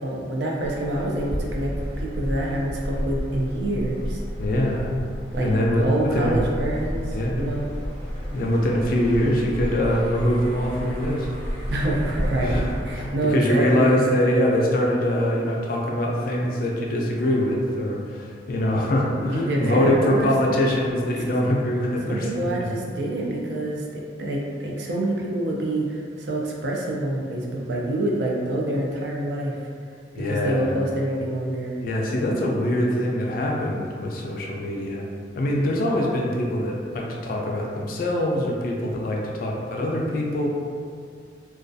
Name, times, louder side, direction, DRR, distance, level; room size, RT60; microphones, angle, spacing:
voice 1, 0.0-4.2 5.3-5.5 5.8-7.7 11.7-14.0 19.2-20.3 21.3-21.4 22.0-29.6 30.1-31.8, right 1 dB, 60° right, -2 dB, 0.4 m, -26 dB
sound 1, 0.6-13.1, equal, 20° right, 1.1 m, -31 dB
voice 2, 4.4-5.0 5.4-6.4 7.1-7.4 8.3-11.3 12.4-22.3 22.6-22.7 30.2-30.7 31.8-35.0 35.4-40.5, left 1 dB, 50° left, -1 dB, 0.3 m, -23 dB
2.3 x 2.3 x 2.5 m, 2.2 s
head